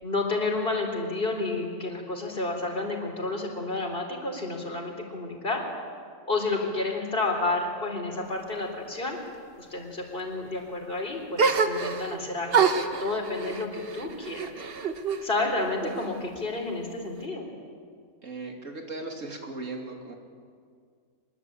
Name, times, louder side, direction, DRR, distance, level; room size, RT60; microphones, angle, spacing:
voice 1, 0.0-5.6 6.3-9.2 9.6-14.5 15.2-17.5, left 2 dB, 40° left, 1 dB, 4.0 m, -30 dB
sound 1, 11.4-12.2 12.5-15.2 15.6-16.4, right 5 dB, 45° right, 1.3 m, -27 dB
voice 2, 18.2-20.1, right 2 dB, 65° right, 2 dB, 3.3 m, -37 dB
24.5 x 21.0 x 8.7 m, 2.1 s
omnidirectional pair, 1.4 m